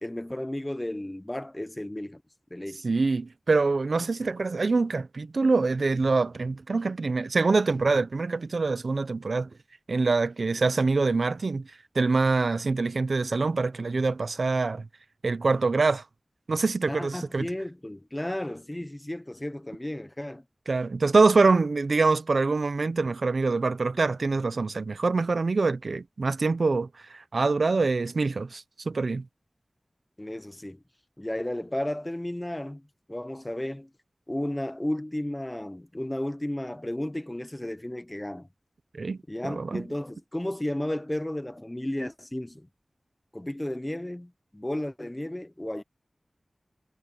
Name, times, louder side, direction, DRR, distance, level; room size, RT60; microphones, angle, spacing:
voice 1, 0.0-2.2 2.5-2.8 16.9-20.4 30.2-30.8 31.2-32.8 33.1-33.9 34.3-38.5 39.3-42.7 43.3-45.8, left 1 dB, 20° left, 1.1 m, -33 dB
voice 2, 2.8-9.5 9.9-11.7 11.9-14.9 15.2-16.0 16.5-17.5 20.7-29.3 38.9-39.2 39.4-39.8, right 3 dB, 80° right, 0.8 m, -25 dB
wide cardioid pair, 50°, 0 cm